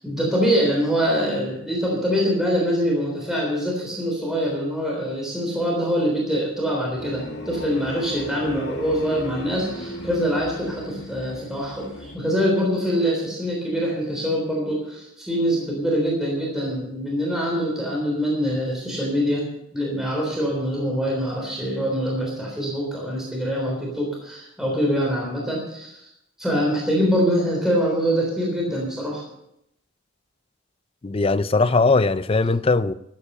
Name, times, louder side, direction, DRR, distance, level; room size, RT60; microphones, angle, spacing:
voice 1, 0.0-26.1 26.4-29.2, equal, ahead, 3.5 m, -24 dB
sound 1, 7.0-12.2, left 1 dB, 50° left, 2.0 m, -36 dB
voice 2, 31.0-32.9, left 3 dB, 25° left, 0.4 m, -19 dB
13.5 x 9.6 x 6.7 m
head